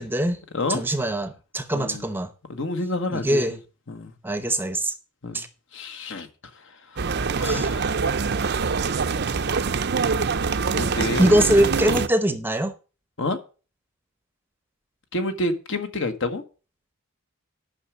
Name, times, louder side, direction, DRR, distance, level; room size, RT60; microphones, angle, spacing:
voice 1, 0.0-0.4 0.7-2.3 3.1-3.5 4.2-4.9 5.3-5.5 7.4-7.7 11.2-12.7, right 1 dB, 10° right, 0.8 m, -22 dB
voice 2, 1.7-2.1 2.5-3.6 3.9-4.1 5.2-5.4 5.7-6.3 6.5-6.6 6.9-8.0 10.7-11.4 11.9-12.0 13.2-13.4 15.1-16.4, left 2 dB, 60° left, 1.3 m, -29 dB
sound 1, 7.0-12.1, right 5 dB, 50° right, 0.6 m, -24 dB
9.6 x 6.0 x 7.2 m
head